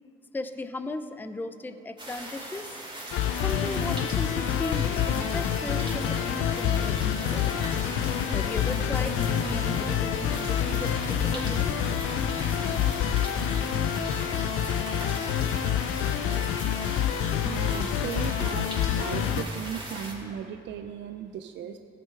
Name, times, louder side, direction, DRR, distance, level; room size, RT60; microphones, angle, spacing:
voice 1, 0.3-2.8 3.4-7.6 8.3-11.7, left 2 dB, 10° left, 10 dB, 0.5 m, -36 dB
sound 1, 2.0-20.1, right 1 dB, 25° right, 2.8 m, -39 dB
sound 2, 3.1-19.4, left 9 dB, 85° left, 0.5 m, -27 dB
sound 3, 4.9-12.9, left 3 dB, 45° left, 0.8 m, -41 dB
voice 2, 16.9-18.7 18.9-21.8, right 8 dB, 65° right, 7 dB, 0.5 m, -37 dB
16.0 x 7.6 x 4.7 m, 2.8 s
cardioid pair, 90°, 20 cm